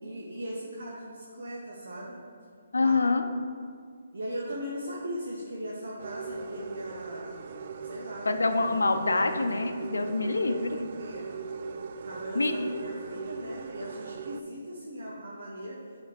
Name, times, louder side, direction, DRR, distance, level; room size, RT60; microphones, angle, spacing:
voice 1, 0.0-2.2 2.8-3.0 4.1-8.4 9.1-9.6 10.5-11.3 12.0-15.8, equal, 75° right, -4 dB, 1.0 m, -39 dB
voice 2, 2.7-3.3 8.3-10.8 12.3-12.7, left 3 dB, 85° left, 7 dB, 0.6 m, -26 dB
sound 1, 6.0-14.4, right 5 dB, 50° right, 0.4 m, -39 dB
7.8 x 5.0 x 3.4 m, 2.1 s
figure-of-eight pair, 150°, 0 cm